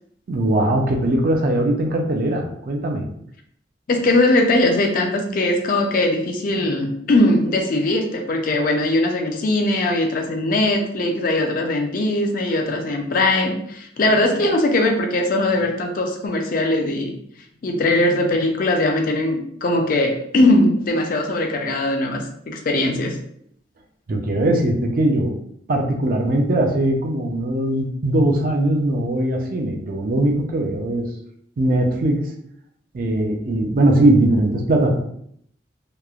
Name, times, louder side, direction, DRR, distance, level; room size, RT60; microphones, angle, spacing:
voice 1, 0.3-3.1 24.1-25.4 25.7-31.1 31.6-32.3 32.9-35.0, right 1 dB, 50° right, 3 dB, 0.4 m, -20 dB
voice 2, 3.9-17.1 17.6-23.2, left 2 dB, 50° left, 3 dB, 0.4 m, -20 dB
2.9 x 2.0 x 2.3 m, 0.68 s
head